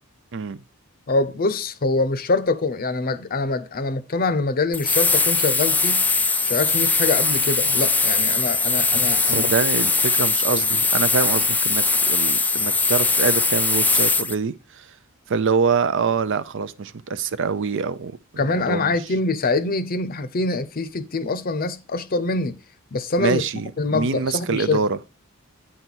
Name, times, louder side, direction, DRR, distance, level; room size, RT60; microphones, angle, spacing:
voice 1, 0.3-0.6 9.3-14.9 15.3-18.2 18.5-18.9 23.2-25.0, right 5 dB, 60° right, 0.5 m, -25 dB
voice 2, 1.1-6.1 6.4-9.5 18.4-22.6 22.9-23.4 23.8-24.8, left 3 dB, 45° left, 0.6 m, -24 dB
sound 1, 4.7-14.3, left 3 dB, 5° left, 0.3 m, -20 dB
9.0 x 4.1 x 6.1 m
head